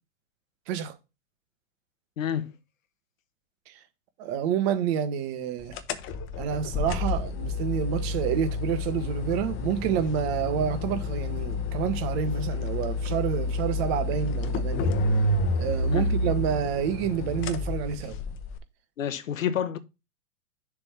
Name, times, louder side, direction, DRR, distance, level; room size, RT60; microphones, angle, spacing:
voice 1, 2.2-2.5 15.9-16.1 19.0-19.8, left 9 dB, 90° left, 1.1 m, -29 dB
voice 2, 4.2-5.7 6.4-14.9 15.5-18.2, right 8 dB, 50° right, 1.5 m, -28 dB
sound 1, 5.7-18.6, left 2 dB, 35° left, 1.0 m, -29 dB
6.8 x 3.7 x 5.8 m
hypercardioid pair, 115°, 38 cm